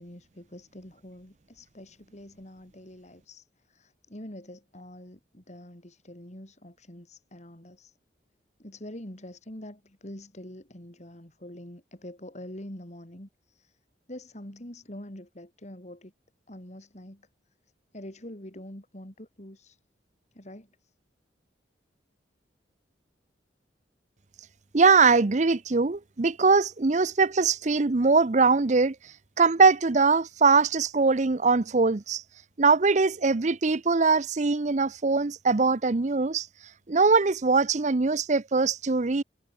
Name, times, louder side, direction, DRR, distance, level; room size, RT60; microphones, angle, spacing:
voice 1, 0.0-8.0 8.6-13.8 14.1-16.1 16.5-17.3 17.9-19.8 20.3-20.9, left 1 dB, 40° left, 3.6 m, -45 dB
voice 2, 24.7-29.0 29.4-32.2 32.6-36.5 36.9-39.2, right 4 dB, 40° right, 0.7 m, -22 dB
head